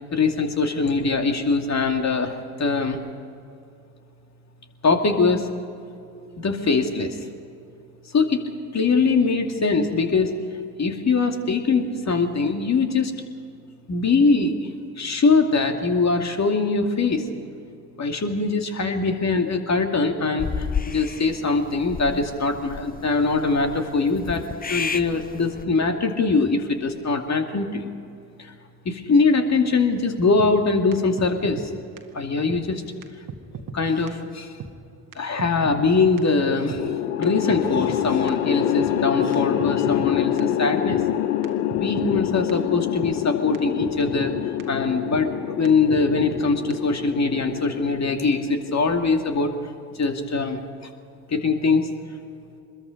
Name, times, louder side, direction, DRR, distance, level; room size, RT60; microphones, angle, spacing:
voice 1, 0.1-3.0 4.8-5.5 6.4-7.2 8.1-10.4 10.8-13.1 13.9-14.6 15.0-17.3 18.0-24.4 24.7-27.9 28.4-28.5 28.8-31.7 32.1-32.8 33.7-34.5 35.2-41.1 41.7-44.3 44.7-49.5 49.9-50.6 51.3-51.9, left 4 dB, 35° left, 4 dB, 2.6 m, -22 dB
sound 1, 20.4-25.6, left 6 dB, 20° left, 0.8 m, -32 dB
sound 2, 30.4-30.5 30.9-31.0 31.2-31.7 32.0-32.1 32.5-32.6 33.0-33.1 33.3-33.8 34.1-34.2 34.6-34.7 35.1-35.2 35.4-35.9 36.2-36.3 36.7-36.8 37.2-38.0 38.3-38.4 38.8-38.9 39.3-39.4 39.6-40.1 40.4-40.5 40.9-41.0 41.4-41.5 41.7-42.2 42.5-42.6 43.0-43.1 43.5-43.6 43.8-44.3 44.6-44.7 45.1-45.2 45.6-45.7 45.9-46.4 46.7-46.8, right 6 dB, 45° right, 1.8 m, -36 dB
sound 3, 36.8-49.1, left 12 dB, 75° left, 0.9 m, -26 dB
25.0 x 21.5 x 5.3 m, 2.5 s
figure-of-eight pair, 50°, 45 cm